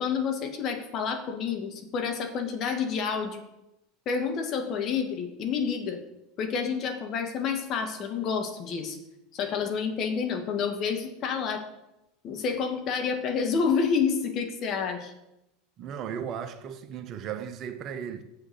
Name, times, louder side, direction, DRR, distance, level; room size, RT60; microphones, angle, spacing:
voice 1, 0.0-3.4 4.0-6.0 6.4-9.0 9.3-11.6 12.2-15.1, left 6 dB, 45° left, 1.7 m, -29 dB
voice 2, 15.8-18.2, right 8 dB, 45° right, 0.8 m, -36 dB
7.3 x 6.5 x 6.9 m
hypercardioid pair, 85°, 0 cm